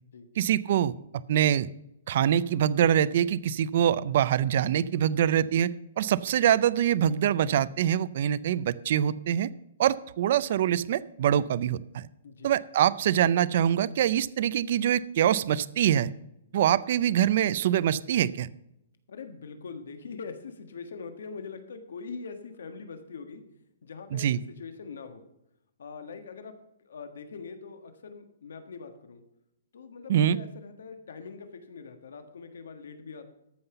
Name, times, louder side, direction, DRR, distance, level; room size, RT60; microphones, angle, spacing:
voice 1, 0.4-0.9 1.3-1.7 2.1-5.7 6.0-9.5 9.8-12.1 12.4-16.1 16.5-18.5 24.1-24.4 30.1-30.4, right 10 dB, 40° right, 17 dB, 0.4 m, -24 dB
voice 2, 19.1-23.4 23.8-25.2 25.8-26.5 26.8-29.2 29.7-33.3, left 5 dB, 70° left, 8 dB, 1.4 m, -42 dB
13.5 x 5.6 x 6.8 m, 0.83 s
hypercardioid pair, 180°, 0 cm